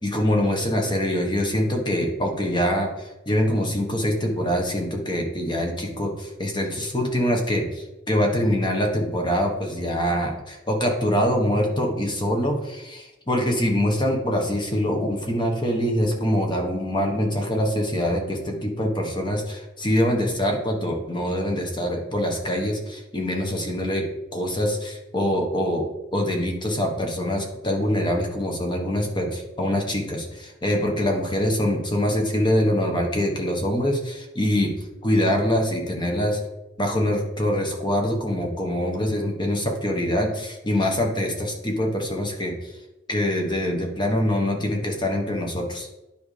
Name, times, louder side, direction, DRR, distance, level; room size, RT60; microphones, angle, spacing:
voice 1, 0.0-24.0 24.3-25.9 26.1-34.7 35.0-36.4 36.8-42.7 43.1-45.9, equal, 25° left, 1 dB, 1.2 m, -24 dB
9.9 x 5.0 x 3.3 m, 1.0 s
head